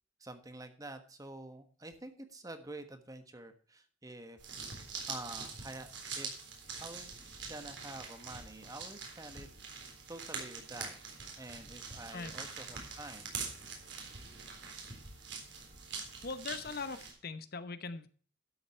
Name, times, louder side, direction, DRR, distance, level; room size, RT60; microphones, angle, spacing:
voice 1, 0.2-4.4 5.0-5.9 6.1-6.3 6.8-7.1 7.5-9.5 9.8-10.9 11.4-13.3, right 2 dB, 20° right, 8 dB, 1.3 m, -48 dB
sound 1, 4.4-17.1, right 5 dB, 65° right, 3.8 m, -44 dB
voice 2, 16.2-18.1, left 4 dB, 50° left, 12 dB, 0.9 m, -41 dB
12.5 x 7.7 x 4.4 m, 0.42 s
head